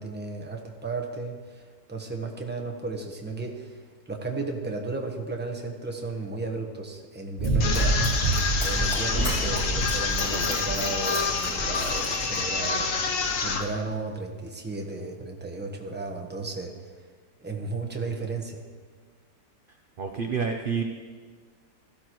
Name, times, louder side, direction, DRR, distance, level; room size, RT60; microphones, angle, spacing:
voice 1, 0.0-3.8 4.1-12.9 13.4-16.7 17.4-18.6, right 3 dB, 10° right, 2 dB, 0.9 m, -34 dB
Run, 7.4-12.7 13.2-13.3, right 2 dB, 20° left, 3.9 m, -28 dB
sound 1, 7.6-13.6, left 4 dB, 55° left, 1.2 m, -27 dB
voice 2, 20.0-20.8, right 6 dB, 55° right, 3 dB, 0.6 m, -28 dB
16.0 x 13.5 x 3.1 m, 1.5 s
omnidirectional pair, 1.8 m